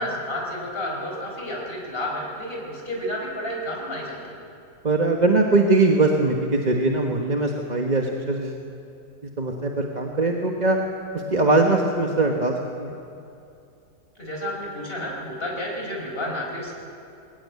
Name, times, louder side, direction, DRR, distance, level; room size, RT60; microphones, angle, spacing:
voice 1, 0.0-4.4 14.2-16.7, left 1 dB, 35° left, -2 dB, 4.9 m, -31 dB
voice 2, 4.8-8.6 9.4-10.8 11.1-13.0, right 2 dB, 30° right, 1 dB, 1.3 m, -21 dB
22.0 x 17.0 x 9.6 m, 2.6 s
omnidirectional pair, 1.8 m